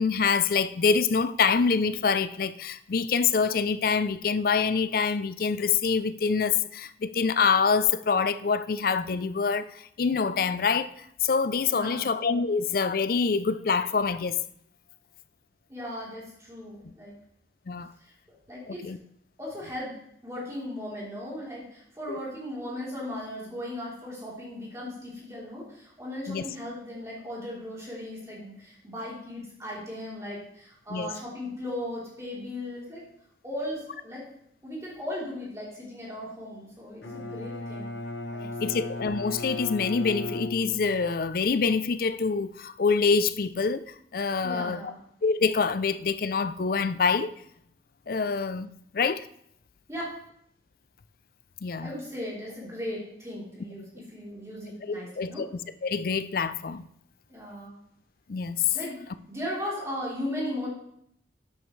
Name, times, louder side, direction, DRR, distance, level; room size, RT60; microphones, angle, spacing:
voice 1, 0.0-14.4 17.7-17.9 18.7-19.0 22.1-22.2 26.3-26.4 30.9-31.1 38.6-43.8 44.1-44.9 45.2-47.3 48.1-49.3 51.6-51.9 54.8-55.5 55.8-56.8 58.3-58.8, left 5 dB, 50° left, 0.4 m, -26 dB
voice 2, 11.7-12.1 15.7-17.1 18.0-18.1 18.5-18.8 19.4-19.9 20.2-33.0 33.4-34.2 34.6-37.9 38.3-38.8 44.4-45.0 49.9-50.0 51.8-55.4 57.3-57.8 58.7-60.7, left 1 dB, 15° right, 3.4 m, -37 dB
Bowed string instrument, 37.0-41.2, left 2 dB, 85° left, 1.0 m, -36 dB
10.5 x 9.3 x 3.2 m
head